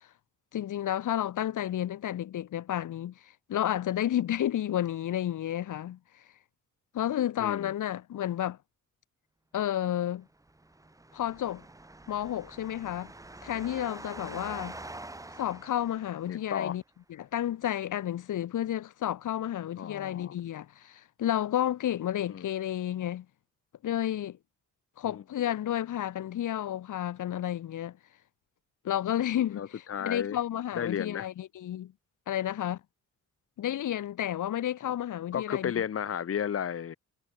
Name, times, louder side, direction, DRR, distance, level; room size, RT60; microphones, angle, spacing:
voice 1, 0.5-3.1 3.5-6.0 6.9-8.6 9.5-10.2 11.1-11.6 12.1-13.1 13.4-14.8 15.4-16.8 17.2-23.3 23.8-24.4 25.0-28.0 28.8-31.9 32.3-32.8 33.6-35.7, left 11 dB, 70° left, 3.9 m, -31 dB
voice 2, 7.4-7.7 16.3-16.8 19.8-20.4 22.3-22.4 25.1-25.2 29.5-30.4 30.7-31.3 34.8-34.9 35.3-37.0, left 8 dB, 45° left, 3.0 m, -33 dB
sound 1, 10.3-16.6, right 2 dB, 10° right, 3.4 m, -46 dB
cardioid pair, 150°, 32 cm